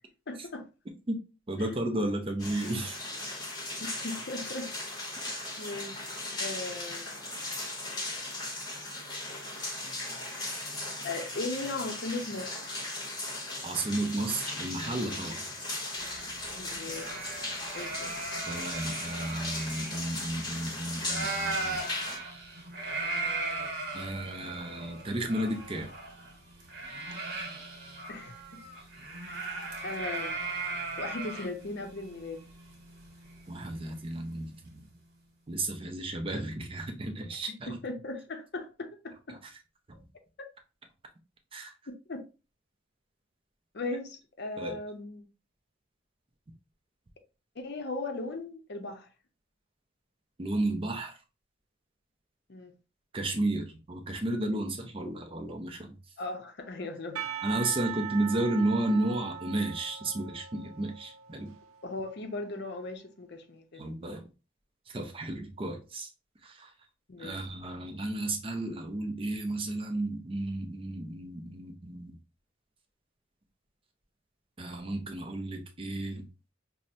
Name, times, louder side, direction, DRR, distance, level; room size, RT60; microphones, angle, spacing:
voice 1, 0.3-0.7 3.8-4.7 5.6-6.0 6.4-7.3 10.0-10.2 11.0-12.8 16.5-17.3 17.7-18.2 28.1-28.6 29.2-29.6 29.8-30.4 31.0-32.5 37.8-39.4 40.4-40.5 41.9-42.2 43.7-45.3 47.6-49.1 52.5-52.7 56.2-57.3 61.8-64.1 67.1-67.4, left 2 dB, 50° left, 0.6 m, -38 dB
voice 2, 1.5-3.0 5.3-5.5 13.6-15.5 18.4-21.8 23.9-25.9 33.5-34.8 35.5-37.8 39.3-39.5 39.9-40.0 41.5-41.7 44.6-44.7 50.4-51.2 53.1-55.9 57.4-61.5 63.7-64.3 64.9-66.1 66.4-66.7 67.2-72.2 74.6-76.3, right 2 dB, 25° right, 0.4 m, -33 dB
sound 1, 2.4-22.2, left 2 dB, 20° left, 0.9 m, -37 dB
sound 2, 16.0-20.7 21.0-33.9, right 3 dB, 50° right, 1.4 m, -38 dB
Percussion, 57.2-62.0, right 10 dB, 85° right, 0.5 m, -40 dB
5.6 x 2.1 x 2.5 m
head